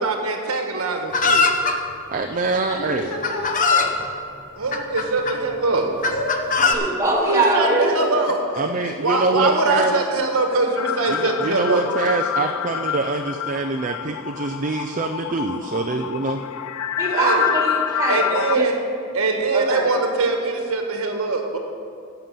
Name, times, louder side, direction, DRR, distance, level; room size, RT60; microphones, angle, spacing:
voice 1, 0.0-1.4 4.6-5.9 7.2-8.3 9.0-11.9 17.1-17.5 18.1-18.8 19.1-21.6, right 3 dB, 70° right, 3 dB, 1.3 m, -22 dB
Chicken rooster, 1.1-1.8 2.7-2.8 3.2-3.9 4.7-5.4 6.0-6.7, left 4 dB, 35° left, 0.8 m, -20 dB
voice 2, 2.1-3.1 8.6-9.9 11.1-16.4, right 3 dB, 35° right, 4 dB, 0.5 m, -24 dB
voice 3, 2.7-4.0 6.1-6.8 7.9-9.2 10.5-10.6 12.4-12.5, left 1 dB, 90° left, -2 dB, 2.6 m, -32 dB
voice 4, 6.7-7.9 17.0-18.3 18.5-18.7 19.5-19.9, right 2 dB, 15° right, -2 dB, 2.2 m, -22 dB
sound 1, 10.8-18.6, left 10 dB, 70° left, 0.4 m, -27 dB
11.0 x 6.9 x 7.5 m, 2.5 s
head